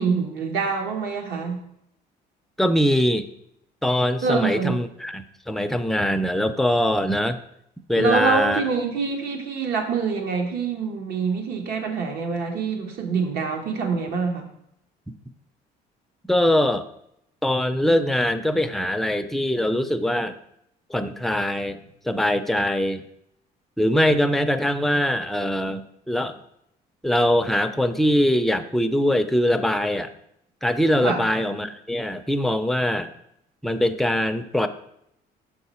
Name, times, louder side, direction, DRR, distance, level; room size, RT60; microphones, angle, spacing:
voice 1, 0.0-1.6 4.2-4.7 8.0-14.5 31.0-31.3, right 5 dB, 70° right, 3 dB, 1.2 m, -25 dB
voice 2, 2.6-3.3 3.8-7.4 7.9-8.6 16.3-16.9 17.4-20.4 20.9-21.8 22.0-23.0 23.8-26.4 27.0-30.1 30.6-33.1 33.6-34.7, left 1 dB, ahead, 8 dB, 0.4 m, -22 dB
6.3 x 4.7 x 4.2 m, 0.76 s
cardioid pair, 110°, 17 cm